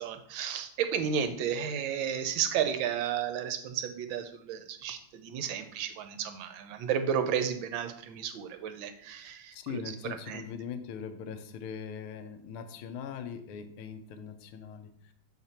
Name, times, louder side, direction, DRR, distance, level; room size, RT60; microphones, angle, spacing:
voice 1, 0.0-10.4, right 8 dB, 75° right, 9 dB, 1.3 m, -33 dB
voice 2, 9.1-15.1, left 7 dB, 80° left, 9 dB, 1.5 m, -41 dB
6.8 x 4.1 x 4.4 m, 0.66 s
omnidirectional pair, 2.4 m